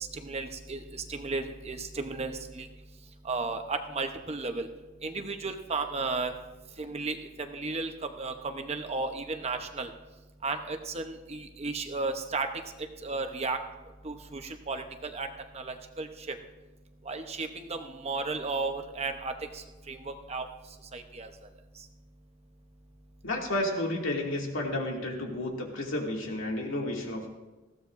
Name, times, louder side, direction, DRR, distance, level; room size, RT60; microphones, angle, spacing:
voice 1, 0.1-2.7 3.2-4.7 5.0-6.3 6.8-7.9 8.2-9.9 10.4-12.5 13.0-13.6 14.0-15.3 15.5-16.3 17.1-19.3 19.9-20.5 20.9-21.3, right 3 dB, 30° right, 6 dB, 0.9 m, -34 dB
voice 2, 23.2-27.3, left 1 dB, 80° left, -1 dB, 2.5 m, -31 dB
20.0 x 15.0 x 2.6 m, 1.1 s
head